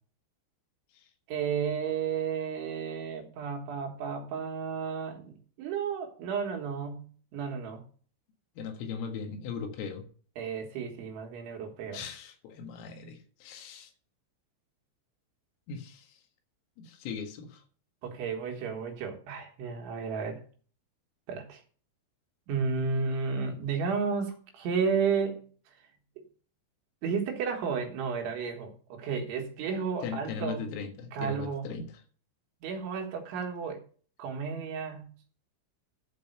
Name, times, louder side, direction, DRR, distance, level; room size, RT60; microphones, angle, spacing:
voice 1, 1.3-7.8 10.4-12.0 18.0-20.4 21.3-21.6 22.5-25.4 27.0-30.7 31.1-31.7 32.6-33.8 34.2-35.1, right 5 dB, 70° right, 3 dB, 3.8 m, -32 dB
voice 2, 8.6-10.1 11.9-13.9 15.7-16.2 16.8-17.6 30.0-31.9, left 6 dB, 80° left, 5 dB, 4.1 m, -39 dB
12.0 x 5.4 x 6.5 m, 0.43 s
omnidirectional pair, 5.9 m